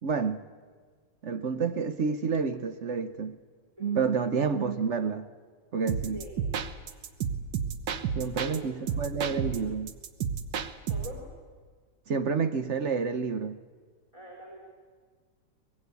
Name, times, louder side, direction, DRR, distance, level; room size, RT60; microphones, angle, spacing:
voice 1, 0.0-0.4 1.2-3.4 3.8-5.3 5.7-6.2 8.2-10.0 12.1-13.6, right 5 dB, 50° right, 10 dB, 0.9 m, -29 dB
voice 2, 4.2-4.8 6.1-6.4 8.3-8.9 9.2-9.4 10.9-11.2 14.1-14.6, left 1 dB, 15° right, -2 dB, 4.0 m, -45 dB
sound 1, 5.9-8.6 8.9-11.2, right 7 dB, 80° right, 1.7 m, -32 dB
23.0 x 19.5 x 8.2 m, 1.5 s
omnidirectional pair, 1.9 m